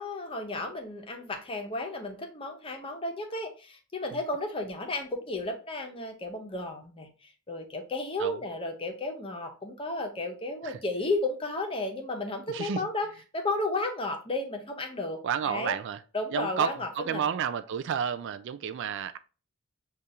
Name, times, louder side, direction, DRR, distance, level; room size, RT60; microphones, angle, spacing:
voice 1, 0.0-15.2 15.4-15.8 16.1-17.3, left 2 dB, 25° left, 0.8 m, -33 dB
voice 2, 12.5-12.9 15.2-16.0 16.3-19.2, right 8 dB, 55° right, 0.3 m, -31 dB
6.6 x 2.4 x 2.8 m
head